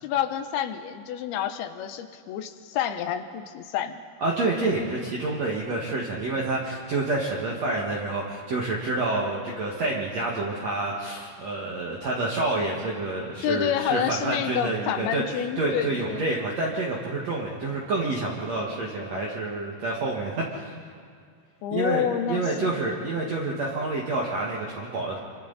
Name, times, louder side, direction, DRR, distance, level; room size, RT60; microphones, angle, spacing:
voice 1, 0.0-4.0 13.4-16.3 21.6-22.7, left 9 dB, 85° left, 9 dB, 2.8 m, -28 dB
voice 2, 4.2-15.2 15.6-20.8 21.7-25.2, right 2 dB, 50° right, -3 dB, 2.5 m, -28 dB
28.0 x 24.5 x 4.1 m, 2.2 s
omnidirectional pair, 4.5 m